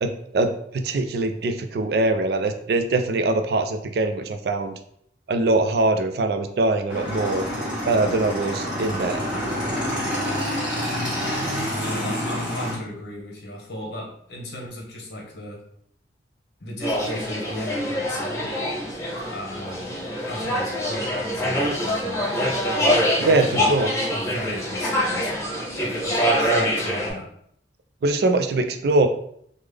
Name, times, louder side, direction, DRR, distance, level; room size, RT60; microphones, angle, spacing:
voice 1, 0.0-4.8 5.3-7.4 7.8-9.2 23.3-23.9 28.0-29.1, right 2 dB, 55° right, 7 dB, 0.3 m, -22 dB
Motorcycle / Engine, 6.9-12.7, equal, 5° right, 1.0 m, -27 dB
voice 2, 11.8-15.6 16.6-18.5 19.3-20.0 20.3-23.7 24.1-25.3 25.7-27.3, left 1 dB, 65° left, -1 dB, 0.9 m, -36 dB
sound 1, 16.8-27.1, equal, 15° left, 1.2 m, -25 dB
3.6 x 2.0 x 3.2 m, 0.68 s
head